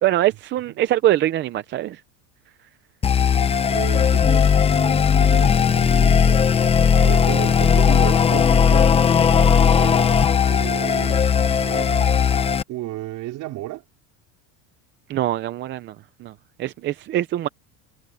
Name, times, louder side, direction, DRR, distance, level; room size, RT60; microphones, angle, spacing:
voice 1, 0.0-2.0 15.1-17.5, right 13 dB, 30° right, 0.5 m, -23 dB
sound 1, 3.0-12.6, left 7 dB, 15° left, 0.6 m, -17 dB
voice 2, 3.6-6.5 7.0-10.1 10.4-11.3 11.6-12.0 12.4-13.8, right 16 dB, 50° right, 4.8 m, -34 dB
cardioid pair, 170°, 39 cm